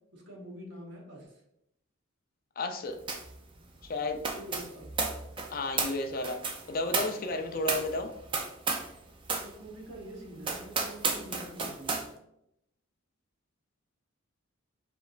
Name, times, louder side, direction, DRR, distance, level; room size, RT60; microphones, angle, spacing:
voice 1, 0.1-1.4 4.3-4.9 9.4-12.0, right 1 dB, 55° right, 0 dB, 1.0 m, -45 dB
voice 2, 2.6-3.0 3.9-4.2 5.5-6.4 6.7-8.1, left 2 dB, 40° left, 6 dB, 0.4 m, -32 dB
sound 1, 3.1-3.4 3.6-9.0 9.2-9.5 9.9-10.0 10.4-12.1, right 4 dB, 25° right, 0.4 m, -33 dB
5.0 x 3.2 x 2.4 m, 0.80 s
head